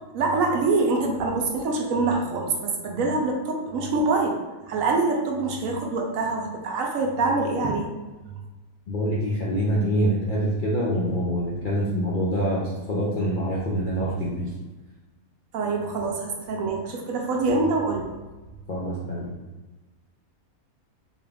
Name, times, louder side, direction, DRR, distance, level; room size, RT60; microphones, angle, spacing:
voice 1, 0.1-4.4 4.7-7.9 15.5-18.2, right 3 dB, 70° right, 1 dB, 0.9 m, -25 dB
voice 2, 8.9-14.5 18.7-19.3, equal, 55° left, -6 dB, 0.5 m, -25 dB
3.7 x 2.4 x 3.3 m, 1.2 s
omnidirectional pair, 1.6 m